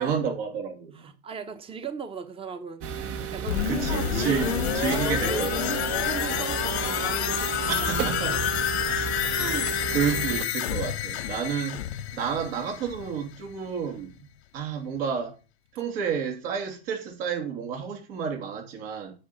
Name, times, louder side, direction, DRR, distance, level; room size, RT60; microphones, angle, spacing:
voice 1, 0.0-1.1 3.6-5.7 7.7-8.4 9.3-11.8 12.1-14.3 14.5-15.3 15.7-19.1, right 7 dB, 70° right, 3.1 m, -30 dB
voice 2, 0.9-2.9 3.3-4.6 4.9-8.0 8.3-9.1, right 4 dB, 15° right, 1.0 m, -37 dB
sound 1, 2.8-10.4, right 7 dB, 45° right, 1.2 m, -32 dB
sound 2, 3.5-13.2 13.5-13.6, left 11 dB, 85° left, 1.4 m, -29 dB
8.8 x 4.8 x 7.0 m
supercardioid pair, 110°, 31 cm